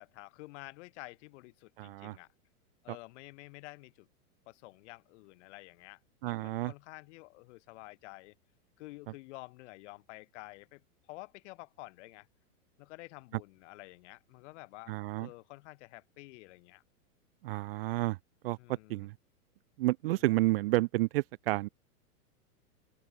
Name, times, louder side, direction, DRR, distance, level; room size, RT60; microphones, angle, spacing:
voice 1, 0.0-2.3 2.8-4.1 4.5-8.3 8.8-10.8 11.1-12.3 12.8-16.8 18.6-19.1 20.1-20.2, left 22 dB, 50° left, 1.8 m, -50 dB
voice 2, 1.8-2.2 2.9-3.0 6.2-6.7 14.9-15.3 17.4-18.2 18.4-19.1 19.8-21.7, right 19 dB, 40° right, 0.5 m, -30 dB
open air
hypercardioid pair, 135°, 45 cm